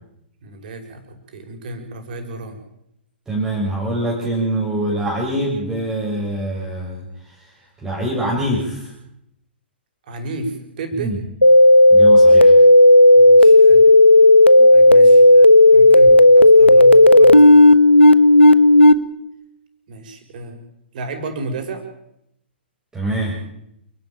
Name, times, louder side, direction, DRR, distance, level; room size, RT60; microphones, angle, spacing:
voice 1, 0.4-2.6 10.1-11.1 13.1-13.9 14.7-17.6 19.9-20.6 20.9-21.8, right 2 dB, 50° right, 5 dB, 5.8 m, -32 dB
voice 2, 3.3-7.5 7.8-8.9 11.0-11.2 11.9-12.6 14.6-14.9 22.9-23.4, right 1 dB, 10° right, -3 dB, 6.9 m, -24 dB
sound 1, 11.4-18.9, left 1 dB, 90° left, 1.3 m, -9 dB
28.0 x 12.5 x 9.2 m, 0.80 s
figure-of-eight pair, 115°, 6 cm